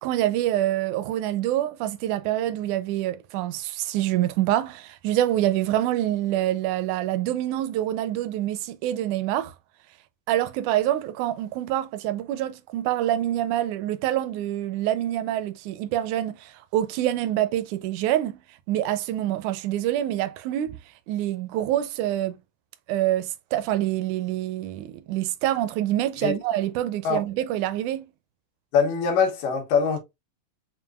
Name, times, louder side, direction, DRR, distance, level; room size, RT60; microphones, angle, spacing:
voice 1, 0.0-9.5 10.3-18.4 18.7-20.8 21.1-22.4 22.9-28.1, right 13 dB, 80° right, 1.9 m, -26 dB
voice 2, 28.7-30.0, left 6 dB, 80° left, 2.8 m, -22 dB
7.0 x 2.5 x 2.3 m
omnidirectional pair, 3.7 m